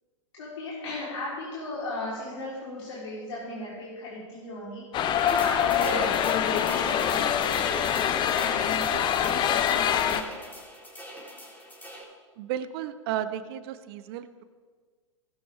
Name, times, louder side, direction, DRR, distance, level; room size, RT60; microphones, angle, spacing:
voice 1, 0.3-4.8 5.2-10.2, left 2 dB, 65° left, -7 dB, 4.4 m, -36 dB
sound 1, 4.9-10.2, left 9 dB, 30° left, 0.9 m, -25 dB
sound 2, 5.2-12.0, equal, 10° left, 4.5 m, -41 dB
voice 2, 12.4-14.4, right 11 dB, 50° right, 13 dB, 1.0 m, -33 dB
18.5 x 12.0 x 3.7 m, 1.5 s
figure-of-eight pair, 105°, 16 cm